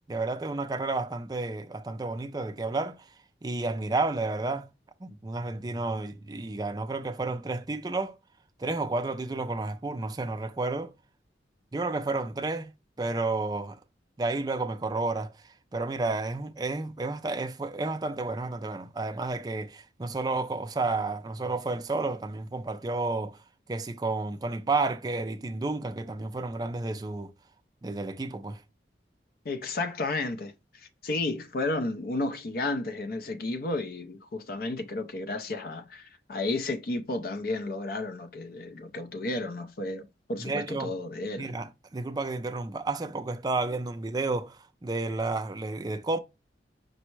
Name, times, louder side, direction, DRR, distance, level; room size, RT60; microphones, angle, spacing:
voice 1, 0.1-3.1 3.4-4.7 5.0-8.2 8.6-10.9 11.7-12.7 13.0-13.8 14.2-23.4 23.7-27.3 27.8-28.6 40.4-40.9 41.4-46.2, right 3 dB, 20° right, 0.4 m, -31 dB
voice 2, 29.4-41.5, left 2 dB, 55° left, 0.5 m, -32 dB
5.3 x 2.0 x 4.5 m
head